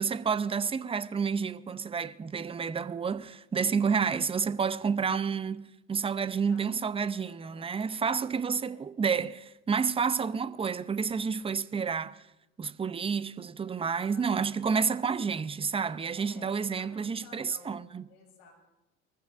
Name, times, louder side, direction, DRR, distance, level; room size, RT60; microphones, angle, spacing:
voice 1, 0.0-12.2 12.6-18.0, right 6 dB, 15° right, 0.6 m, -30 dB
voice 2, 6.4-7.9 8.6-8.8 10.1-10.2 14.0-14.6 16.2-17.8 18.1-18.5, left 4 dB, 70° left, 6.0 m, -56 dB
23.0 x 15.0 x 2.5 m
hypercardioid pair, 75°, 37 cm